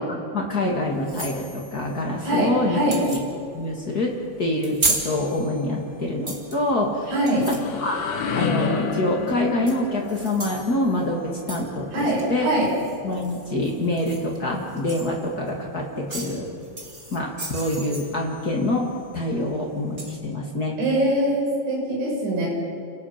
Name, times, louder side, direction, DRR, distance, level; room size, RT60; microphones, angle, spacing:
voice 1, 0.0-2.8 3.1-3.2 3.5-7.1 7.5-8.0 8.3-12.5 13.0-16.5 17.1-18.9 19.1-20.8, left 1 dB, 50° left, -1 dB, 1.1 m, -26 dB
sound 1, 0.6-20.1, right 2 dB, 30° right, 1.3 m, -36 dB
voice 2, 2.2-3.0 7.1-7.5 11.9-12.7 20.8-22.5, right 1 dB, 70° right, -5 dB, 8.9 m, -23 dB
sound 2, 7.1-12.8, left 5 dB, 85° left, 4.4 m, -31 dB
30.0 x 18.0 x 5.9 m, 2.3 s
omnidirectional pair, 5.5 m